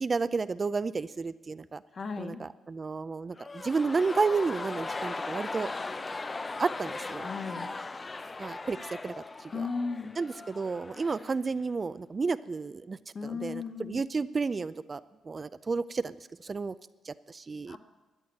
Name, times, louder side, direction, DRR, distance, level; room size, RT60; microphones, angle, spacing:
voice 1, 0.0-1.8 2.2-5.7 6.6-7.3 8.4-9.1 9.4-9.7 10.2-16.7 17.0-17.8, right 4 dB, 30° right, 14 dB, 0.4 m, -32 dB
voice 2, 1.9-2.4 7.2-7.6 9.5-10.1 13.1-14.0 17.7-17.8, left 4 dB, 45° left, 5 dB, 1.5 m, -35 dB
sound 1, 3.3-11.4 11.7-11.8, left 3 dB, 25° left, 0.6 m, -38 dB
13.5 x 9.4 x 9.0 m, 1.2 s
cardioid pair, 90°, 0 cm